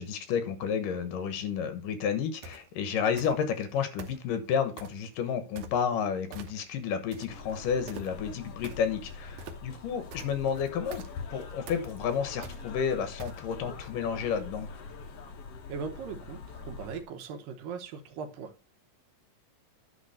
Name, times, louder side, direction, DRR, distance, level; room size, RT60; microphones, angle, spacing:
voice 1, 0.0-11.0 11.3-14.7, left 7 dB, 75° left, 2.8 m, -31 dB
sound 1, 2.4-2.7 3.2-3.6 4.0-5.1 5.6-6.0 6.3-6.8 7.1-13.7, right 3 dB, 70° right, 2.1 m, -45 dB
sound 2, 7.3-17.0, left 4 dB, 60° left, 1.8 m, -44 dB
voice 2, 15.7-18.7, right 5 dB, 85° right, 2.9 m, -39 dB
10.0 x 3.6 x 6.6 m
omnidirectional pair, 3.9 m